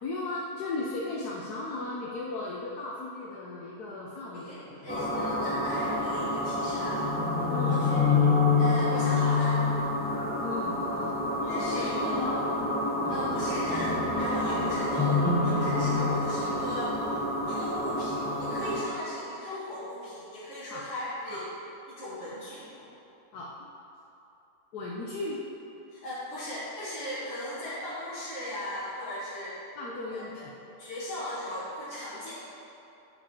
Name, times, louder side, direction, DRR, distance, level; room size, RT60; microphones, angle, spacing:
voice 1, 0.0-4.9 7.5-7.8 10.4-11.2 11.4-12.5 18.9-19.0 20.7-20.8 21.3-21.4 22.2-22.3 22.8-23.0 23.3-23.5 24.7-25.4 29.8-30.5, left 2 dB, 90° left, -4 dB, 1.4 m, -36 dB
voice 2, 4.8-7.1 7.7-8.0 8.6-9.6 11.4-12.3 13.1-17.2 17.4-21.4 21.9-22.9 25.9-29.6 30.1-30.4 30.8-32.3, left 1 dB, 50° left, -11 dB, 2.2 m, -38 dB
sound 1, 4.9-18.8, left 3 dB, 10° left, 0.5 m, -27 dB
11.5 x 5.1 x 4.4 m, 2.9 s
omnidirectional pair, 1.6 m